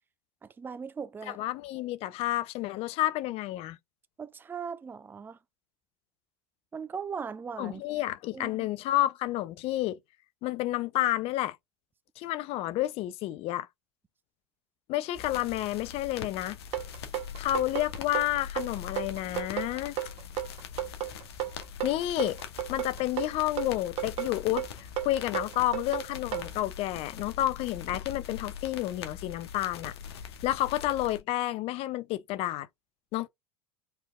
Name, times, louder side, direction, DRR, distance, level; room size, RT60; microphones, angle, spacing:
voice 1, 0.4-1.4 4.2-5.4 6.7-7.8 8.3-8.7, right 6 dB, 15° right, 0.4 m, -39 dB
voice 2, 1.3-3.8 7.6-10.0 10.4-11.6 12.2-13.7 14.9-16.6 17.4-19.9 21.8-22.4 22.7-24.6 25.0-29.9 30.4-32.7 33.1-33.3, left 15 dB, 45° left, 0.6 m, -30 dB
sound 1, 15.1-31.2, left 8 dB, 70° left, 1.1 m, -42 dB
sound 2, 16.7-26.5, right 13 dB, 45° right, 1.4 m, -33 dB
4.4 x 3.4 x 2.5 m
figure-of-eight pair, 80°, 14 cm